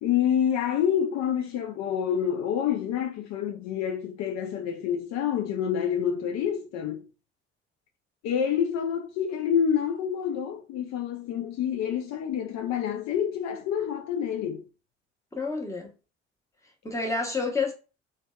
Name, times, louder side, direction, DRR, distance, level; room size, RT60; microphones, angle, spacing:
voice 1, 0.0-7.1 8.2-14.6, left 8 dB, 60° left, 0.4 m, -27 dB
voice 2, 15.3-15.9 16.8-17.7, left 4 dB, 10° left, 0.9 m, -29 dB
2.5 x 2.3 x 2.2 m
hypercardioid pair, 50°, 31 cm